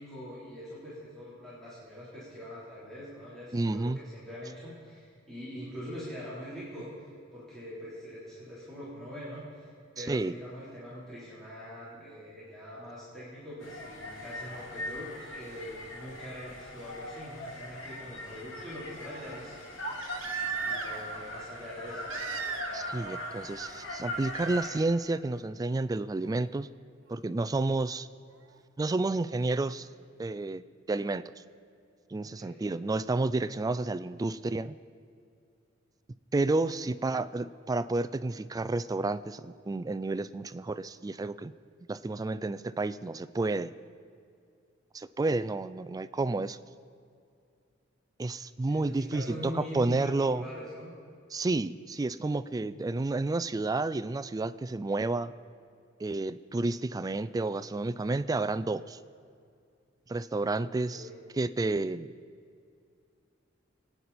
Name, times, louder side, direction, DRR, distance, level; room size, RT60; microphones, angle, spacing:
voice 1, 0.0-19.6 20.6-22.0 32.4-32.6 48.7-50.9 60.9-61.2, equal, 5° left, -11 dB, 3.6 m, -43 dB
voice 2, 3.5-4.0 10.0-10.3 22.7-26.7 27.1-28.1 28.8-29.9 30.2-30.6 30.9-31.2 32.1-34.8 36.3-41.5 41.9-43.7 44.9-46.6 48.2-50.4 51.3-55.3 56.0-59.0 60.1-61.1 61.3-62.1, right 2 dB, 20° right, 15 dB, 0.3 m, -30 dB
Shanghai Sounds, 13.6-24.8, left 1 dB, 75° left, 2.4 m, -41 dB
Crying sobbing, 17.1-17.2 19.8-21.1 22.1-22.9 23.2-23.7 24.3-24.6 26.3-26.4, right 6 dB, 80° right, 1.4 m, -36 dB
24.0 x 9.4 x 4.2 m, 2.3 s
head